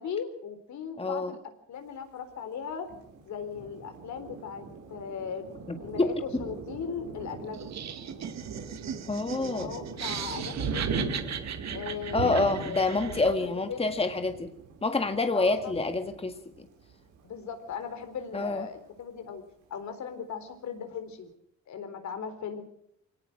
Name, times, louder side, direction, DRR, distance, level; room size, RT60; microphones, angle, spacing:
voice 1, 0.0-1.4 1.7-2.9 3.2-4.6 4.9-5.5 5.8-7.7 9.4-11.1 11.7-13.9 15.3-15.7 17.2-19.4 19.7-21.3 21.7-22.6, left 6 dB, 70° left, 8 dB, 4.0 m, -38 dB
voice 2, 1.0-1.3 6.0-6.1 6.3-6.4 9.1-9.7 12.1-14.5 14.8-16.7 18.3-18.7, left 3 dB, 20° left, 7 dB, 1.8 m, -27 dB
Thunder, 2.9-17.2 17.7-17.8 18.1-18.7, right 4 dB, 85° right, 6.1 m, -39 dB
Laughter, 7.5-13.4, right 8 dB, 60° right, 2.1 m, -38 dB
23.5 x 18.5 x 6.4 m, 0.72 s
cardioid pair, 90°, 30 cm